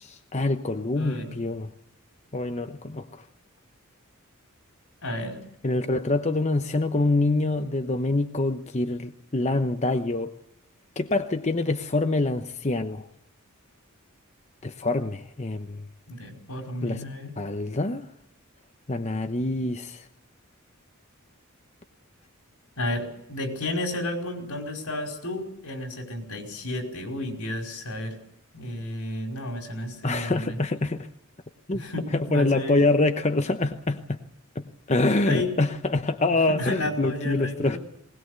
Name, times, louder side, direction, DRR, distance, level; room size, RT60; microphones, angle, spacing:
voice 1, 0.0-1.7 2.3-3.1 5.6-10.3 11.0-13.1 14.6-15.8 16.8-17.0 17.4-18.1 18.9-20.0 30.0-31.1 31.7-31.8 32.1-34.2 34.6-37.8, left 2 dB, 30° left, 0.9 m, -25 dB
voice 2, 0.9-1.3 5.0-5.4 16.1-17.3 22.8-28.2 28.5-30.6 31.7-32.8 35.2-35.5 36.5-37.8, left 1 dB, 85° left, 5.1 m, -32 dB
20.0 x 20.0 x 8.1 m
head